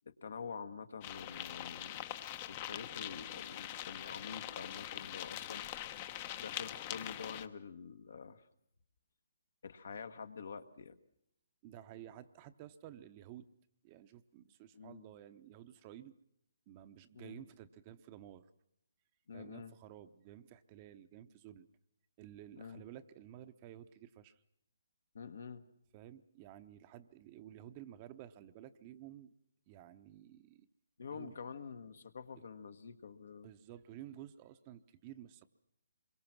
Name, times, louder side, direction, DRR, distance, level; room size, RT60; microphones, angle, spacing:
voice 1, 0.0-2.0 2.5-5.6 6.4-8.5 9.6-11.0 14.7-15.0 17.1-17.4 19.3-19.8 22.6-22.8 25.1-25.7 31.0-33.5, left 5 dB, 65° left, 9 dB, 1.5 m, -47 dB
sound 1, 1.0-7.5, left 12 dB, 30° left, 0.9 m, -43 dB
voice 2, 11.6-13.5 13.8-16.2 16.7-18.5 19.3-21.7 22.2-24.4 25.9-29.3 29.7-30.7 31.1-31.4 32.3-32.4 33.4-35.5, right 11 dB, 30° right, 10 dB, 0.9 m, -53 dB
26.0 x 22.5 x 6.1 m, 0.76 s
figure-of-eight pair, 145°, 0 cm